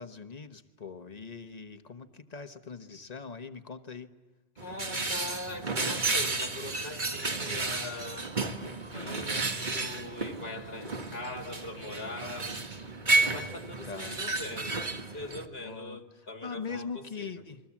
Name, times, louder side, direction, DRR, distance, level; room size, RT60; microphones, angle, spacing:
voice 1, 0.0-4.1 8.9-9.3 13.9-14.2 15.6-16.0 16.4-17.6, left 5 dB, 40° left, 8 dB, 1.3 m, -41 dB
voice 2, 4.6-8.3 8.9-12.6 13.1-17.3, left 2 dB, 60° left, 4 dB, 2.0 m, -42 dB
sound 1, 4.6-15.5, right 3 dB, 45° right, 1.7 m, -32 dB
29.0 x 22.0 x 7.4 m, 1.2 s
omnidirectional pair, 1.1 m